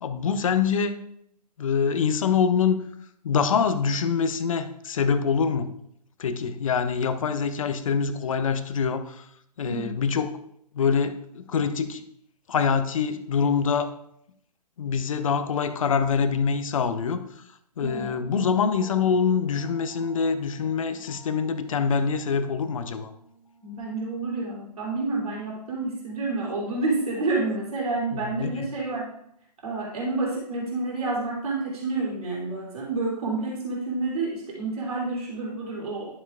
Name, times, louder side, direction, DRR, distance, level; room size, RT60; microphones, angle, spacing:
voice 1, 0.0-0.9 1.6-2.8 3.2-5.7 6.2-9.3 9.6-10.4 10.7-12.0 12.5-13.9 14.8-17.2 17.8-23.1 28.1-28.7, left 6 dB, 55° left, 10 dB, 0.8 m, -25 dB
voice 2, 9.6-10.0 17.8-18.1 23.6-29.1 29.6-36.1, right 3 dB, 60° right, -3 dB, 3.0 m, -29 dB
sound 1, 17.9-25.5, equal, 80° left, 2.6 m, -50 dB
11.5 x 7.4 x 2.4 m, 0.72 s
figure-of-eight pair, 130°, 21 cm